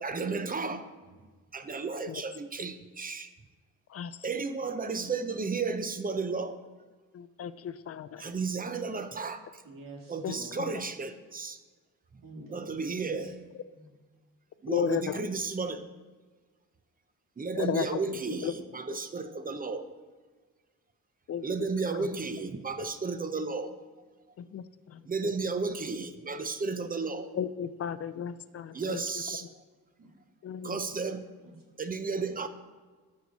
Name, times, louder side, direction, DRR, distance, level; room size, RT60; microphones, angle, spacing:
voice 1, 0.0-0.9 1.5-3.3 4.2-6.6 8.2-9.6 10.1-11.6 12.1-12.2 12.5-13.3 14.6-15.8 17.4-19.9 21.4-23.8 25.0-27.3 28.7-29.4 30.6-31.3 31.8-32.5, right 4 dB, 25° right, 9 dB, 0.6 m, -33 dB
voice 2, 7.1-8.2 10.2-10.4 14.7-15.2 17.6-17.8 18.4-18.5 21.3-21.4 24.5-24.6 24.9-25.0 27.3-29.0 30.4-30.8, left 8 dB, 45° left, 14 dB, 0.4 m, -33 dB
voice 3, 9.6-10.6 12.2-13.2 13.7-13.9 30.0-30.1 31.4-31.8 32.1-32.3, right 2 dB, 80° right, 0 dB, 2.0 m, -48 dB
13.0 x 4.8 x 4.0 m, 1.4 s
cardioid pair, 100°, 33 cm